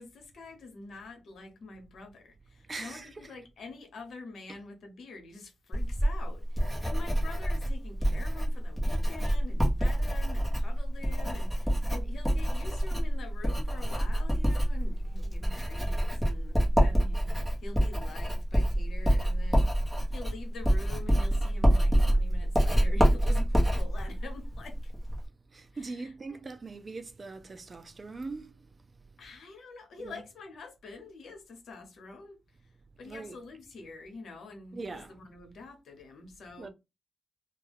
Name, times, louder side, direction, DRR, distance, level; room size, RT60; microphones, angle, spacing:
voice 1, 0.0-24.9 25.7-26.4 29.2-32.4 33.0-36.7, left 3 dB, 75° left, 0.8 m, -46 dB
voice 2, 2.7-3.3 25.5-28.9 30.0-30.2 33.0-33.4 34.7-35.1 36.6-36.7, right 3 dB, 35° right, 0.4 m, -41 dB
Writing, 5.7-25.3, equal, ahead, 0.9 m, -27 dB
2.3 x 2.2 x 3.3 m
cardioid pair, 90°, 0 cm